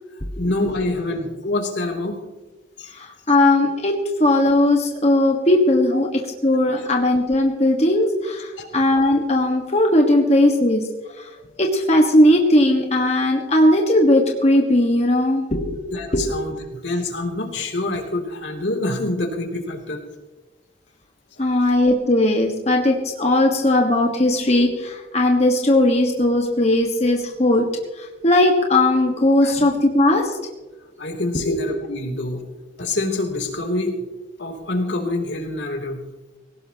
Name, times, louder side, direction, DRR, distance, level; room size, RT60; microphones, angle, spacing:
voice 1, 0.4-2.2 2.8-2.9 5.9-6.0 6.7-6.9 8.6-8.7 11.4-11.6 15.9-20.0 21.4-21.5 29.4-29.5 31.0-32.4 32.8-33.9 34.4-36.0, left 2 dB, 80° left, 2 dB, 3.1 m, -26 dB
voice 2, 2.9-3.9 4.2-10.8 11.2-11.3 11.6-15.8 16.1-16.3 21.4-27.7 28.0-30.4 31.3-31.6, left 1 dB, 35° left, 1 dB, 1.5 m, -18 dB
20.0 x 18.0 x 3.0 m, 1.2 s
head